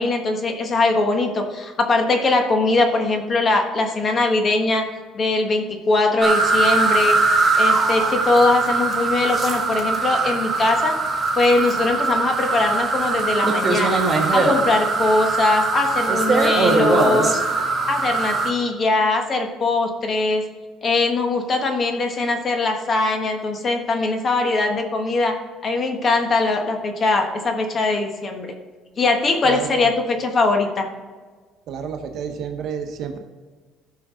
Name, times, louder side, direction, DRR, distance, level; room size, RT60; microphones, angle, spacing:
voice 1, 0.0-4.8 5.1-7.2 7.5-11.0 11.3-14.0 14.3-17.4 17.9-20.4 20.8-25.4 25.6-28.5 29.0-29.9 30.2-30.9, left 2 dB, 30° left, 4 dB, 1.3 m, -21 dB
sound 1, 6.2-18.5, right 3 dB, 20° right, 1.5 m, -21 dB
voice 2, 29.4-29.9 31.7-33.2, right 7 dB, 55° right, 5 dB, 1.2 m, -30 dB
15.0 x 5.6 x 3.8 m, 1.4 s
cardioid pair, 140°, 0 cm